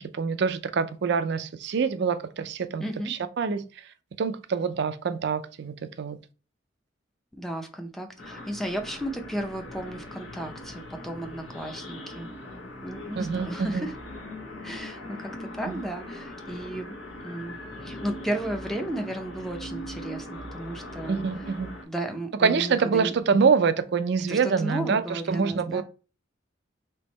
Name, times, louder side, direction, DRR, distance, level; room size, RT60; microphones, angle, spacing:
voice 1, 0.0-3.9 4.2-6.2 13.2-13.9 15.7-15.8 21.1-21.7 22.4-25.8, right 5 dB, 60° right, 0.4 m, -26 dB
voice 2, 2.8-3.1 7.4-12.3 12.8-13.9 14.6-16.9 17.2-21.2 21.9-23.1 24.3-25.8, right 1 dB, ahead, 0.5 m, -34 dB
sound 1, 8.2-21.8, left 1 dB, 75° left, 1.1 m, -40 dB
3.5 x 2.9 x 4.0 m
head